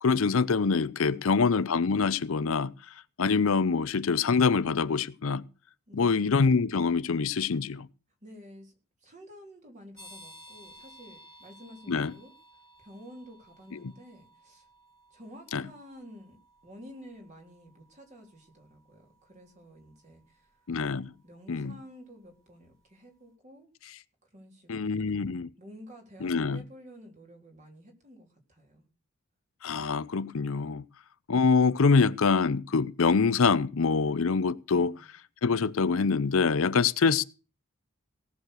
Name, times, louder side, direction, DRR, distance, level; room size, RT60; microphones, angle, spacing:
voice 1, 0.0-2.7 3.2-5.4 5.9-7.9 11.9-12.1 13.7-13.9 15.5-15.7 20.7-21.1 21.5-21.8 24.7-25.5 26.2-26.6 29.6-30.8 31.3-34.9 35.4-37.2, left 5 dB, 75° left, 0.6 m, -25 dB
voice 2, 5.9-6.4 8.2-8.7 9.0-12.3 12.8-14.7 15.1-16.4 16.6-20.5 21.2-23.7 24.2-28.8 34.7-35.1, equal, 35° right, 3.4 m, -51 dB
sound 1, 10.0-22.5, equal, 15° right, 3.7 m, -57 dB
17.5 x 6.5 x 6.5 m
head